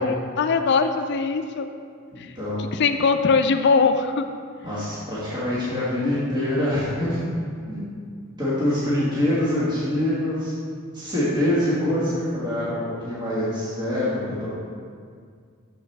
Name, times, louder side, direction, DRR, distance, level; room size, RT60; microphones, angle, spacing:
voice 1, 0.0-1.7 2.2-2.3 2.6-4.2, left 4 dB, 55° left, 8 dB, 0.4 m, -21 dB
voice 2, 2.1-2.6 4.6-7.2 7.7-7.9 8.4-10.5 10.9-14.5, left 1 dB, 20° right, -11 dB, 1.5 m, -25 dB
7.0 x 6.9 x 3.3 m, 2.2 s
head